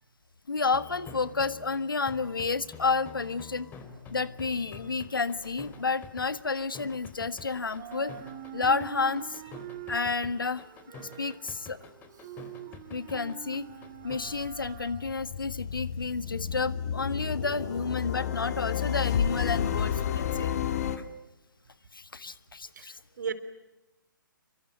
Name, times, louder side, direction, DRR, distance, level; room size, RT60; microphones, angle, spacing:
voice 1, 0.5-3.7 4.1-8.1 8.5-9.4 9.9-10.6 11.0-11.8 12.9-13.7 14.0-20.5 21.0-21.1 21.9-23.0, left 4 dB, 75° left, 14 dB, 1.6 m, -30 dB
sound 1, 0.6-14.2, left 5 dB, 15° left, 3.4 m, -46 dB
sound 2, 4.5-7.4 7.6-15.8, right 12 dB, 30° right, 2.0 m, -46 dB
sound 3, 13.7-21.0, left 9 dB, 45° left, 2.5 m, -31 dB
voice 2, 22.8-23.3, right 7 dB, 55° right, 12 dB, 3.3 m, -35 dB
28.0 x 24.0 x 8.9 m, 0.97 s
figure-of-eight pair, 135°, 11 cm